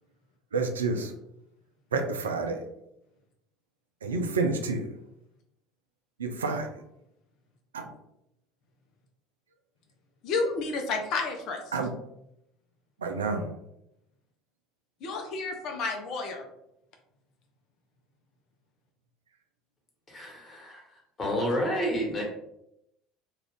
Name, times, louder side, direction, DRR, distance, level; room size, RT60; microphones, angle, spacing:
voice 1, 0.5-1.1 1.9-2.6 4.0-4.9 6.2-6.8 7.7-7.9 11.7-11.9 13.0-13.5, right 3 dB, 90° right, 5 dB, 0.3 m, -29 dB
voice 2, 10.2-11.6 15.0-16.4, left 3 dB, 60° left, 3 dB, 0.6 m, -30 dB
voice 3, 20.1-22.2, equal, 30° left, -1 dB, 1.3 m, -30 dB
2.5 x 2.4 x 3.4 m, 0.81 s
hypercardioid pair, 70°, 0 cm